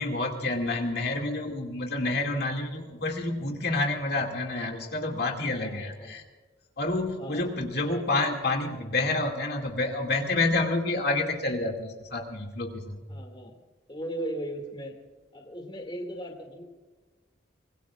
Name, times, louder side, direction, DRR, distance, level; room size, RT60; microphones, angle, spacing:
voice 1, 0.0-6.2 6.8-13.0, left 2 dB, 55° left, 1 dB, 2.3 m, -28 dB
voice 2, 5.5-6.1 7.1-7.4 7.8-8.1 13.1-13.5 13.9-15.0 15.3-16.6, right 1 dB, 25° left, 2 dB, 2.3 m, -37 dB
25.0 x 21.0 x 2.5 m, 1.3 s
head